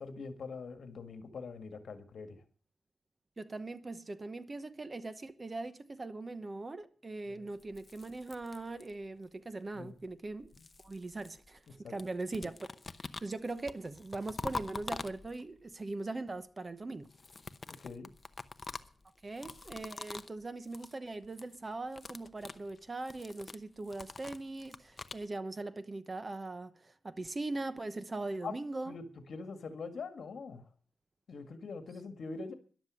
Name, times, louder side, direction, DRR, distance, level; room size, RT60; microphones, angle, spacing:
voice 1, 0.0-2.4 7.3-7.5 9.7-10.0 11.7-11.9 17.7-18.1 28.4-28.5 28.9-30.6 31.3-32.5, left 4 dB, 65° left, 1.9 m, -43 dB
voice 2, 3.4-10.5 10.8-12.5 13.2-17.1 19.2-29.0, right 2 dB, 30° right, 1.0 m, -40 dB
sound 1, 7.6-9.2 10.1-11.7 12.0-15.6 17.0-20.4 20.6-21.0 21.2-21.6 21.8-25.3, left 3 dB, 30° left, 0.7 m, -45 dB
13.5 x 11.5 x 6.3 m
wide cardioid pair, 130°, 0 cm